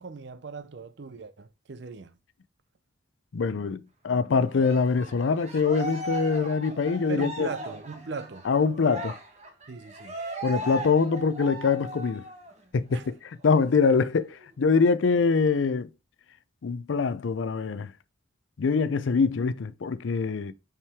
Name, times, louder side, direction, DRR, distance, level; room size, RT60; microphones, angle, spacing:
voice 1, 0.0-2.2 7.1-8.5 9.7-10.2 12.9-13.1, right 4 dB, 60° right, 0.5 m, -38 dB
voice 2, 3.3-7.5 8.5-9.2 10.4-12.3 12.7-13.1 13.4-15.9 16.6-17.9 18.6-20.5, left 5 dB, 75° left, 0.5 m, -24 dB
Cheering, 4.5-12.5 12.9-13.1 13.4-14.4, equal, 35° right, 1.2 m, -38 dB
5.7 x 4.8 x 3.5 m
head